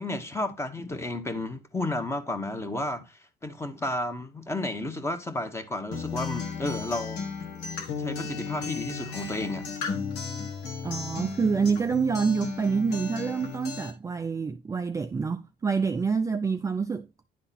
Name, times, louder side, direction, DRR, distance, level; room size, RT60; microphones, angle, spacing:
voice 1, 0.0-7.3 8.0-9.7, left 2 dB, 15° left, 1.2 m, -32 dB
Acoustic guitar, 5.9-13.9, left 5 dB, 90° left, 1.6 m, -35 dB
voice 2, 10.8-17.1, right 5 dB, 20° right, 0.4 m, -27 dB
10.0 x 3.8 x 4.2 m
cardioid pair, 110°, 17 cm